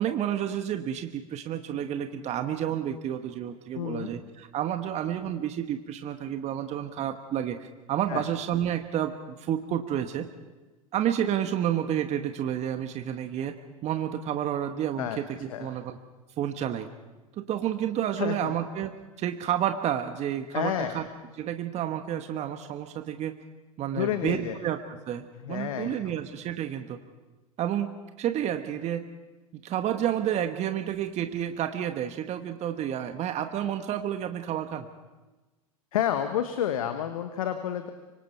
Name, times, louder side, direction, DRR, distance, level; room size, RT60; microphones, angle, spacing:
voice 1, 0.0-9.1 9.4-10.3 10.9-13.5 13.8-16.0 16.4-16.9 17.5-21.0 21.4-23.3 23.8-24.8 25.0-27.0 27.6-27.9 28.2-29.0 29.6-34.9, right 10 dB, 35° right, 7 dB, 1.4 m, -30 dB
voice 2, 3.7-4.1 8.1-8.2 15.0-15.2 15.5-15.7 18.2-18.5 20.5-21.0 23.9-24.6 25.4-26.1 35.9-37.9, left 10 dB, 70° left, 8 dB, 1.3 m, -30 dB
25.5 x 24.5 x 4.5 m, 1.2 s
hypercardioid pair, 90°, 18 cm